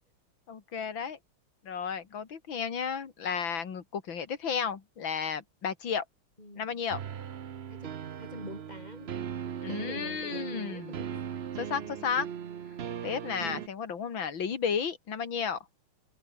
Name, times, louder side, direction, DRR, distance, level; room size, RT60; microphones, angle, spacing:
voice 1, 0.5-1.2 1.6-6.0 6.6-7.0 9.6-11.0 11.6-12.3 13.0-15.6, left 6 dB, 65° left, 3.0 m, -33 dB
sound 1, 6.9-13.7, right 8 dB, 85° right, 0.5 m, -39 dB
voice 2, 7.7-9.1 9.5-11.2, left 1 dB, 20° left, 5.9 m, -45 dB
omnidirectional pair, 2.3 m